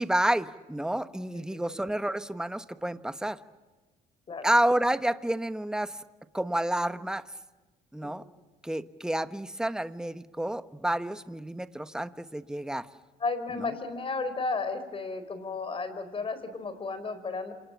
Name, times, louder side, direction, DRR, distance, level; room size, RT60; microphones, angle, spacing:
voice 1, 0.0-3.4 4.4-6.0 6.3-7.2 7.9-8.2 8.6-12.9, right 1 dB, 5° right, 11 dB, 1.2 m, -29 dB
voice 2, 1.3-1.8 4.3-4.5 8.0-8.3 13.2-17.5, left 3 dB, 30° left, 12 dB, 4.6 m, -34 dB
28.5 x 27.0 x 7.2 m, 1.2 s
cardioid pair, 110°, 17 cm